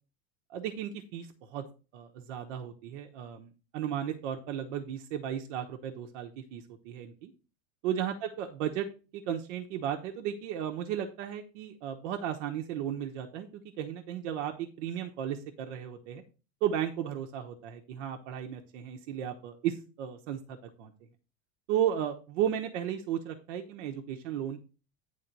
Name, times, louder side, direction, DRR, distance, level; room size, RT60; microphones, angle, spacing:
voice 1, 0.5-1.6 1.9-7.3 7.8-8.9 9.1-16.2 16.6-20.9 21.7-24.6, right 10 dB, 75° right, 3 dB, 1.1 m, -34 dB
9.0 x 3.8 x 5.3 m, 0.35 s
supercardioid pair, 135°, 37 cm